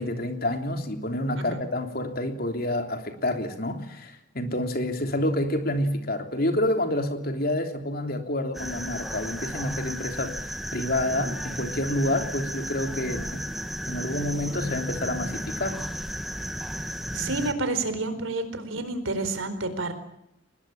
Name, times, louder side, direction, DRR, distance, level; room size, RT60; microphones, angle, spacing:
voice 1, 0.0-13.5 13.8-15.9, left 1 dB, 50° left, 6 dB, 3.3 m, -28 dB
sound 1, 8.5-17.5, equal, ahead, 1.4 m, -34 dB
voice 2, 17.1-19.9, right 3 dB, 85° right, 10 dB, 4.4 m, -29 dB
23.0 x 21.0 x 8.8 m, 0.80 s
head